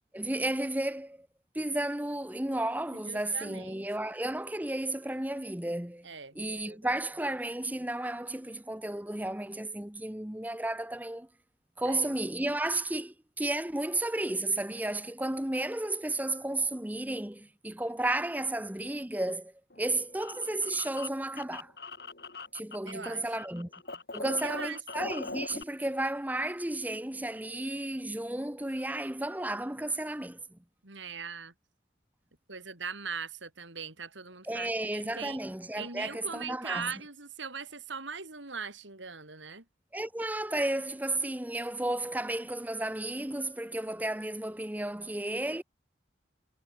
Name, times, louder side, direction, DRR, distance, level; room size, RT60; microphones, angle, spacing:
voice 1, 0.1-1.3 1.5-6.1 6.3-11.3 11.8-19.5 19.8-21.7 22.5-23.7 24.1-30.4 34.4-36.9 39.9-45.6, right 1 dB, 10° right, 0.9 m, -33 dB
voice 2, 3.1-3.9 6.0-6.8 11.9-12.0 22.8-23.7 24.2-24.8 30.8-31.5 32.5-35.4 35.8-39.6, right 5 dB, 80° right, 3.8 m, -41 dB
sound 1, 19.7-23.1 23.3-25.6, left 3 dB, 55° left, 4.9 m, -41 dB
head